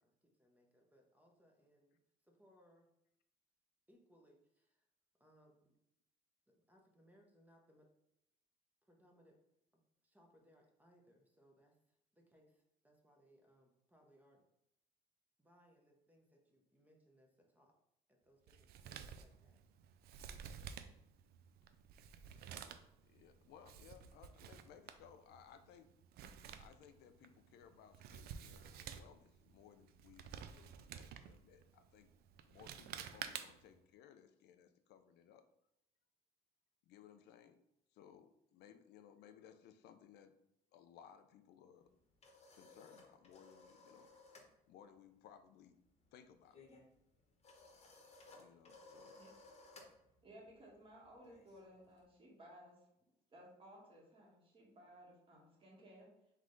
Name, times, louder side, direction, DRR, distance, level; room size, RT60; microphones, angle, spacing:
voice 1, 0.0-2.9 3.9-4.9 5.2-5.7 6.5-7.9 8.8-9.4 9.7-14.5 15.4-17.7 18.1-19.6, equal, 10° right, 1 dB, 0.8 m, -69 dB
Male speech man speaking, 18.5-33.8, right 8 dB, 65° right, 0.4 m, -52 dB
voice 2, 23.0-25.9 26.6-32.1 32.5-35.4 36.9-37.6 37.9-40.4 40.7-41.9 42.5-44.1 44.7-45.8 46.1-46.6 48.3-49.2, left 9 dB, 75° left, 9 dB, 0.5 m, -62 dB
sound 1, 41.8-44.5 44.8-45.1 45.4-52.0, left 3 dB, 40° left, 1.0 m, -61 dB
voice 3, 50.2-52.8 53.3-56.1, equal, 30° right, -3 dB, 1.6 m, -59 dB
3.6 x 3.2 x 3.8 m, 0.81 s
cardioid pair, 110°, 17 cm